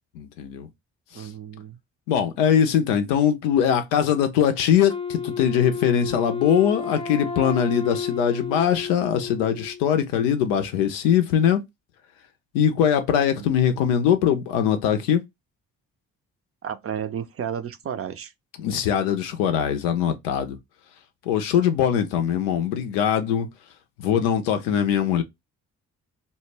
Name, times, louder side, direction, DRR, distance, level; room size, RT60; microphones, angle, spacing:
voice 1, 0.1-0.7 1.1-1.3 2.1-11.6 12.5-15.2 18.6-20.6 21.2-23.5 24.0-25.2, left 9 dB, 85° left, 0.5 m, -22 dB
voice 2, 1.1-1.8 13.4-13.5 16.6-18.3, right 8 dB, 40° right, 0.5 m, -32 dB
Wind instrument woodwind instrument, 4.9-9.9, left 5 dB, 15° left, 0.5 m, -31 dB
2.1 x 2.0 x 3.2 m
hypercardioid pair, 40°, 36 cm